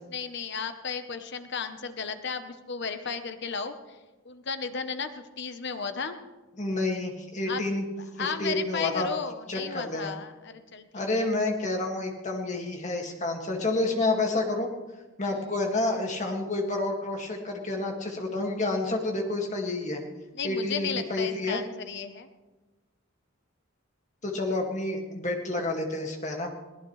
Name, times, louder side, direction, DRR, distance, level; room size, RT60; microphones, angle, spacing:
voice 1, 0.1-3.7 4.2-6.2 7.5-7.6 8.2-11.3 20.3-22.3, left 5 dB, 50° left, 9 dB, 0.9 m, -34 dB
voice 2, 6.6-7.9 8.2-9.1 9.5-10.1 10.9-14.7 15.2-20.0 20.4-21.6 24.2-26.5, left 2 dB, 35° left, 2 dB, 2.0 m, -29 dB
22.0 x 17.5 x 3.2 m, 1.2 s
head